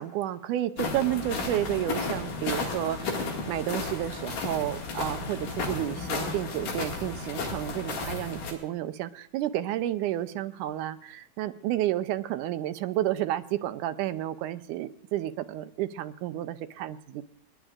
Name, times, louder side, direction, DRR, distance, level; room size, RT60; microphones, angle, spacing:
voice 1, 0.0-17.2, right 13 dB, 80° right, 11 dB, 2.1 m, -31 dB
sound 1, 0.8-8.5, left 3 dB, 75° left, 3.7 m, -33 dB
29.0 x 11.0 x 2.5 m, 0.68 s
omnidirectional pair, 3.7 m